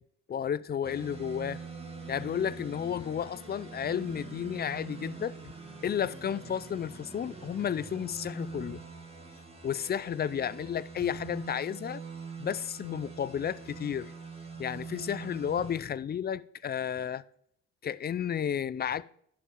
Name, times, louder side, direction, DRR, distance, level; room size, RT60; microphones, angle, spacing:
voice 1, 0.3-1.6 2.1-5.5 5.8-8.8 9.6-12.0 12.4-14.1 14.6-17.2 17.8-19.0, left 8 dB, 35° left, 0.4 m, -32 dB
sound 1, 0.8-15.8, right 4 dB, 20° right, 1.9 m, -44 dB
11.0 x 5.2 x 3.7 m
cardioid pair, 90°, 30 cm